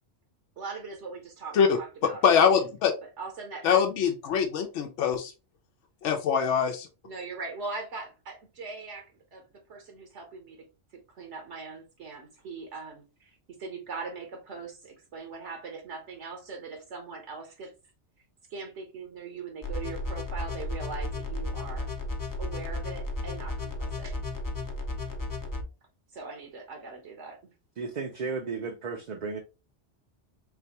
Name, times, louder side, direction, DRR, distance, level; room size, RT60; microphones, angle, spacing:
voice 1, 0.6-2.7 3.0-3.9 7.0-9.4 9.7-10.6 11.1-13.3 13.6-17.7 18.5-21.9 22.4-24.2 26.1-27.5, right 4 dB, 75° right, 1.2 m, -41 dB
voice 2, 2.0-2.9 3.6-5.3 6.0-6.9, left 7 dB, 85° left, 0.9 m, -23 dB
sound 1, 19.6-25.6, left 2 dB, 25° left, 0.5 m, -34 dB
voice 3, 27.8-29.4, right 4 dB, 50° right, 0.5 m, -34 dB
4.0 x 3.3 x 2.8 m
omnidirectional pair, 1.2 m